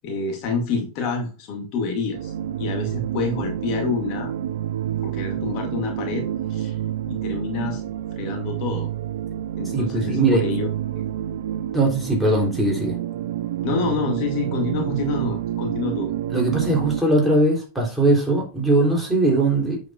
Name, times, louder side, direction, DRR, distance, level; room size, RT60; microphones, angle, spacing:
voice 1, 0.0-2.3 2.6-4.3 5.0-6.7 7.1-7.8 8.2-8.9 9.6-10.7 13.6-16.1, left 4 dB, 40° left, 2 dB, 2.2 m, -27 dB
sound 1, 2.1-17.0, right 11 dB, 60° right, 0.5 m, -28 dB
voice 2, 9.7-10.5 11.7-13.0 16.3-19.8, right 2 dB, ahead, -2 dB, 3.3 m, -20 dB
8.2 x 7.0 x 2.5 m, 0.33 s
figure-of-eight pair, 90°, 0 cm